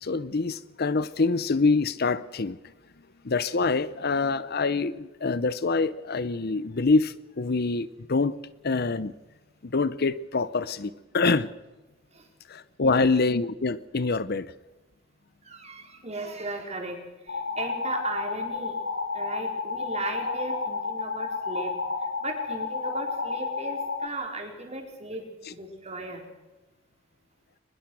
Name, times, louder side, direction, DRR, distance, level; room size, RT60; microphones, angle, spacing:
voice 1, 0.0-2.6 3.2-8.3 8.6-9.1 9.6-11.5 12.5-14.5 25.5-25.6, left 3 dB, 50° left, 16 dB, 0.7 m, -25 dB
voice 2, 15.4-18.8 19.1-26.2, right 2 dB, 35° right, 2 dB, 4.5 m, -37 dB
sound 1, 17.3-24.1, left 4 dB, 70° left, 2.2 m, -31 dB
23.0 x 21.0 x 6.3 m, 1.1 s
head